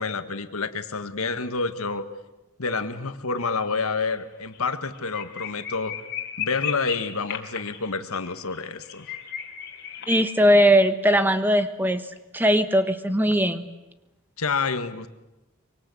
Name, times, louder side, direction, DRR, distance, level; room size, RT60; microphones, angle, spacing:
voice 1, 0.0-2.1 2.6-6.0 6.4-9.1 14.4-15.1, left 4 dB, 90° left, 9 dB, 1.6 m, -28 dB
sound 1, 3.4-3.8 4.0-4.1 4.5-4.6 4.9-10.2, left 9 dB, 50° left, 3.5 m, -35 dB
voice 2, 10.1-12.0 12.3-13.7, equal, 10° right, 10 dB, 1.2 m, -19 dB
24.5 x 24.0 x 8.5 m, 1.0 s
head